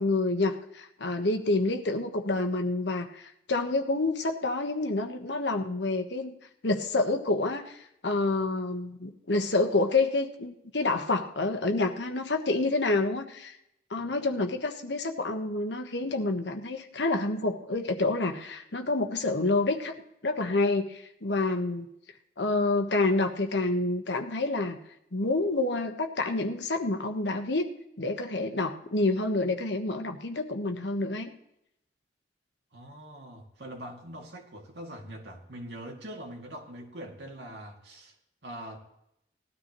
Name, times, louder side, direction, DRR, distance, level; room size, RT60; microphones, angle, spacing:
voice 1, 0.0-6.3 6.6-13.6 13.9-19.9 20.2-21.9 22.4-24.8 25.1-27.7 28.0-31.3, left 2 dB, 75° left, 5 dB, 1.3 m, -28 dB
voice 2, 13.9-14.3 32.7-38.1 38.4-38.8, right 1 dB, 75° right, 0 dB, 2.5 m, -43 dB
19.0 x 12.5 x 3.1 m, 0.80 s
head